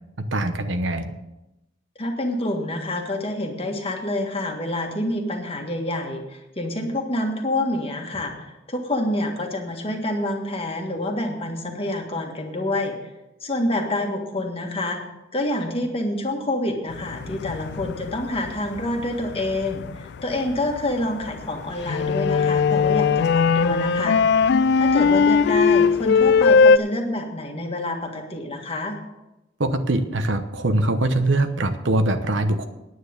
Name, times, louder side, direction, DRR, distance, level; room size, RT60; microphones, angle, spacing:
voice 1, 0.2-1.1 29.6-32.7, right 1 dB, 70° right, 8 dB, 1.0 m, -22 dB
voice 2, 2.0-12.9 13.4-15.0 15.3-24.2 24.8-29.0, left 1 dB, 30° left, 2 dB, 1.7 m, -27 dB
sound 1, 16.9-26.8, left 5 dB, 60° left, 0.3 m, -19 dB
9.5 x 9.2 x 6.6 m, 0.96 s
head